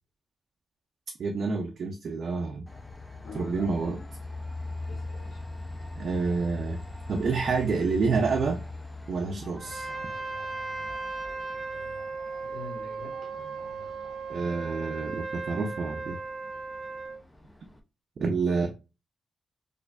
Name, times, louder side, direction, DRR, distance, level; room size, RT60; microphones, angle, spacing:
voice 1, 1.2-2.7 3.3-4.0 6.0-6.8 7.1-8.6 9.1-9.9 14.3-16.2 18.2-18.7, right 4 dB, 55° right, 0.4 m, -28 dB
Train, 2.7-17.8, left 2 dB, 10° left, 0.4 m, -42 dB
voice 2, 3.2-4.0 4.9-5.4 12.4-13.2, left 4 dB, 80° left, 1.5 m, -44 dB
sound 1, 6.4-14.3, left 2 dB, 50° left, 1.2 m, -52 dB
Trumpet, 9.6-17.2, right 4 dB, 20° right, 0.8 m, -36 dB
4.4 x 2.5 x 2.2 m
wide cardioid pair, 155°, 0 cm